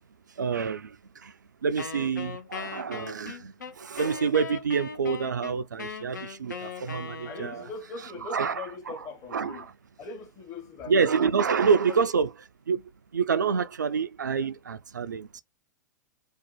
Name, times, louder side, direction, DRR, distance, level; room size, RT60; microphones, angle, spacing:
voice 1, 0.4-1.3 1.6-7.5 8.3-8.5 9.3-9.6 10.9-12.3 12.7-12.8 13.1-15.4, right 6 dB, 75° right, 0.4 m, -27 dB
Wind instrument woodwind instrument, 1.8-7.8, left 5 dB, 75° left, 0.7 m, -39 dB
voice 2, 7.2-9.7 10.0-12.1, left 4 dB, 35° left, 1.1 m, -41 dB
2.8 x 2.4 x 3.7 m
figure-of-eight pair, 95°, 10 cm